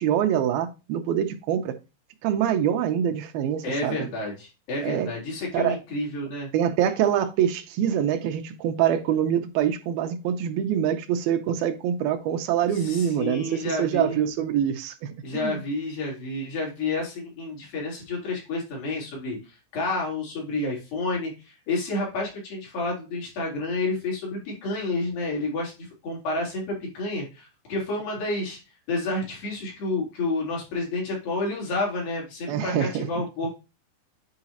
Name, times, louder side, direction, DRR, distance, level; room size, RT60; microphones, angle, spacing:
voice 1, 0.0-1.7 2.2-4.1 4.8-5.1 5.5-5.8 6.5-15.6 32.5-33.1, right 9 dB, 85° right, 7 dB, 2.7 m, -25 dB
voice 2, 3.6-6.5 12.7-14.2 15.2-28.6 28.9-33.5, left 2 dB, 70° left, -3 dB, 5.2 m, -30 dB
9.5 x 4.9 x 2.8 m, 0.29 s
omnidirectional pair, 4.3 m